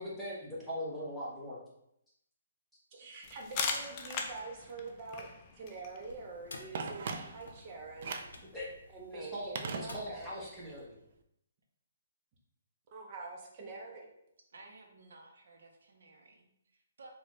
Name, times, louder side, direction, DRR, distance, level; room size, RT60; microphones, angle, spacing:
voice 1, 0.0-1.6 8.5-8.7 9.1-11.0, equal, ahead, -9 dB, 1.0 m, -40 dB
voice 2, 2.9-5.3 5.5-8.2 8.9-10.4 12.9-14.1, right 3 dB, 35° right, 0 dB, 0.8 m, -45 dB
sound 1, 3.2-8.8, left 5 dB, 30° left, 0.4 m, -41 dB
sound 2, 6.1-10.9, left 2 dB, 90° left, 0.6 m, -54 dB
Telephone, 6.7-7.6 8.0-8.4 9.6-10.4 10.7-10.8, right 4 dB, 50° right, 0.4 m, -39 dB
voice 3, 14.5-17.1, right 2 dB, 75° right, 3 dB, 0.7 m, -56 dB
4.1 x 2.4 x 3.1 m, 0.77 s
hypercardioid pair, 155°, 0 cm